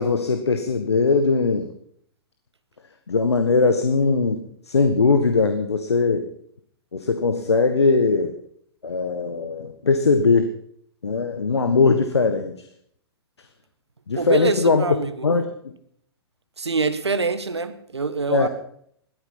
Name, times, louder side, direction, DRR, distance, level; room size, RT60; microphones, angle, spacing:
voice 1, 0.0-1.7 3.1-6.3 6.9-8.3 8.8-10.5 11.0-12.5 14.1-14.8 15.2-15.5 18.3-18.5, left 4 dB, 85° left, 7 dB, 1.4 m, -20 dB
voice 2, 14.2-15.1 16.6-18.5, right 4 dB, 85° right, 13 dB, 1.5 m, -24 dB
16.0 x 13.0 x 5.7 m, 0.67 s
hypercardioid pair, 115°, 14 cm